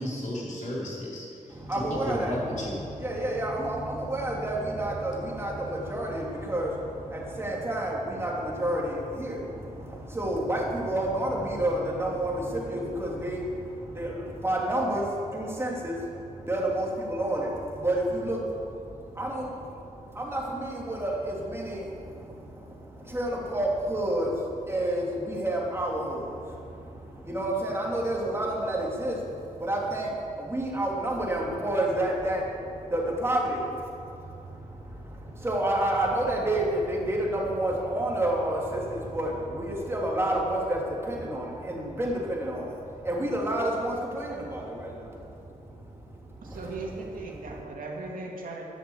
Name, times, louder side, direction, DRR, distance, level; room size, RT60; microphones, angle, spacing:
voice 1, 0.0-2.8, left 1 dB, 60° left, -5 dB, 4.6 m, -34 dB
voice 2, 1.5-46.6, right 1 dB, 15° right, -3 dB, 2.9 m, -30 dB
voice 3, 46.4-48.6, right 3 dB, 75° right, -1 dB, 2.7 m, -37 dB
13.5 x 11.0 x 8.1 m, 2.6 s
wide cardioid pair, 150°, 14 cm